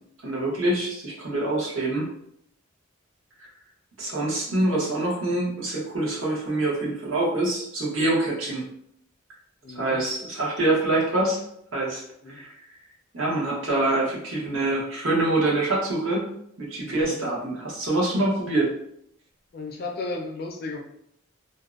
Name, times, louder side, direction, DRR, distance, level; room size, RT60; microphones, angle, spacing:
voice 1, 0.2-2.1 4.0-8.6 9.7-11.4 11.7-12.0 12.3-12.5 13.1-16.3 16.6-18.7, right 2 dB, 80° right, -4 dB, 0.9 m, -25 dB
voice 2, 9.6-10.0 12.2-12.4 16.8-17.2 19.5-20.8, left 3 dB, 50° left, 2 dB, 0.3 m, -34 dB
2.6 x 2.0 x 2.4 m, 0.72 s
head